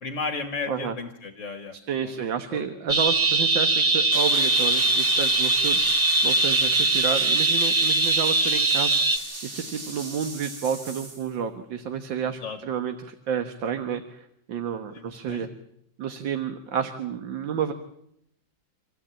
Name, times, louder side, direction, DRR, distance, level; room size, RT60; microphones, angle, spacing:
voice 1, 0.0-1.8 2.0-2.6 12.4-12.6 14.9-15.5, left 4 dB, 45° left, 7 dB, 1.7 m, -34 dB
voice 2, 1.9-5.8 6.2-9.0 9.4-15.5 16.0-17.7, right 7 dB, 75° right, 7 dB, 2.0 m, -30 dB
sound 1, 2.9-9.2, right 2 dB, 15° right, 1.7 m, -21 dB
sound 2, 4.1-11.3, right 2 dB, 35° right, 2.8 m, -37 dB
26.5 x 16.0 x 8.9 m, 0.76 s
omnidirectional pair, 2.0 m